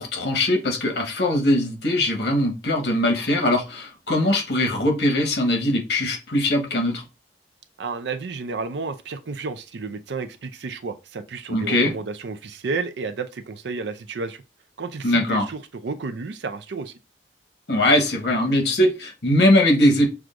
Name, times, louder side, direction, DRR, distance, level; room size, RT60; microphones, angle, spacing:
voice 1, 0.0-7.0 11.5-11.9 15.0-15.5 17.7-20.1, left 1 dB, 65° left, 1.2 m, -21 dB
voice 2, 7.8-14.4 14.8-16.9, right 4 dB, 70° right, 0.5 m, -31 dB
6.1 x 2.3 x 2.5 m
head